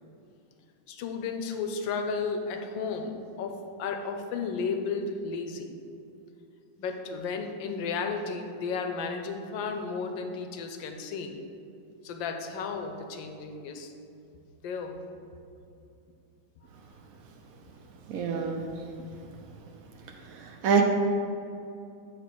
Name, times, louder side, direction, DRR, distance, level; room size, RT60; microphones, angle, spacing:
voice 1, 0.9-5.7 6.8-11.4 12.0-13.9 14.6-15.0, left 5 dB, 75° left, 5 dB, 1.3 m, -33 dB
voice 2, 18.1-18.6 20.3-20.8, right 6 dB, 80° right, 3 dB, 0.7 m, -26 dB
8.2 x 3.1 x 6.0 m, 2.7 s
omnidirectional pair, 2.2 m